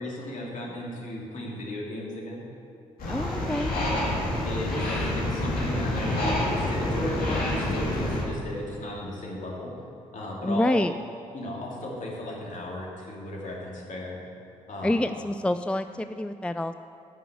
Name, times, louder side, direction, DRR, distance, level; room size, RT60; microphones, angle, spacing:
voice 1, 0.0-2.4 3.1-3.5 4.4-4.7 5.1-6.2 6.4-9.7 10.1-10.7 11.3-14.2 14.7-15.1, left 1 dB, 55° left, -3 dB, 2.7 m, -35 dB
sound 1, 3.0-8.2, left 1 dB, 70° left, 2.4 m, -27 dB
voice 2, 3.1-3.7 10.4-10.9 14.8-16.7, left 1 dB, 5° left, 10 dB, 0.3 m, -27 dB
9.3 x 6.1 x 8.2 m, 2.8 s
hypercardioid pair, 40°, 16 cm